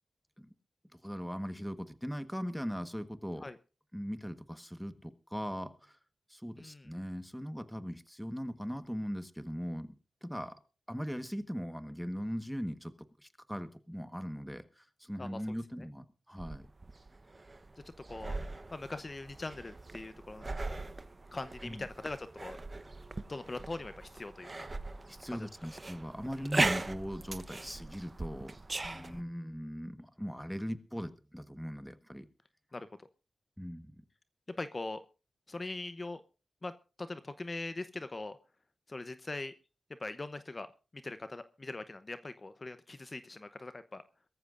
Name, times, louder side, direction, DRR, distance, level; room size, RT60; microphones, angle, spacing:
voice 1, 1.0-3.5 3.9-6.0 6.3-10.6 10.9-12.9 13.2-16.7 21.6-21.8 25.1-28.6 28.9-32.3 33.6-33.9, equal, ahead, 10 dB, 1.4 m, -40 dB
voice 2, 6.6-6.9 15.2-15.6 18.1-18.4 18.7-20.4 20.7-20.9 21.3-22.6 23.3-24.7 25.4-25.5 26.4-26.5 28.8-29.2 32.7-33.1 34.6-35.0 35.5-36.2 36.6-36.7 37.0-38.4 38.9-39.5 40.0-40.7 40.9-44.0, left 2 dB, 40° left, 11 dB, 0.8 m, -41 dB
sound 1, 16.4-29.2, right 2 dB, 35° right, 1.0 m, -39 dB
22.5 x 14.0 x 2.6 m, 0.33 s
cardioid pair, 60°, 0 cm